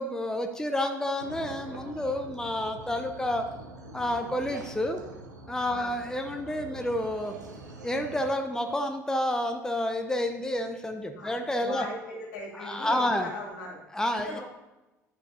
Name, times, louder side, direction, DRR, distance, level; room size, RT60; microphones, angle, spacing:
voice 1, 0.0-3.5 3.9-5.0 5.5-7.3 7.8-11.9 12.5-13.3 13.9-14.4, left 1 dB, 5° left, 5 dB, 0.7 m, -29 dB
sound 1, 1.2-8.3, right 2 dB, 80° right, 0.8 m, -44 dB
voice 2, 11.7-13.8 14.1-14.4, left 2 dB, 65° left, -4 dB, 2.7 m, -39 dB
9.6 x 5.0 x 4.0 m, 1.0 s
figure-of-eight pair, 60°, 9 cm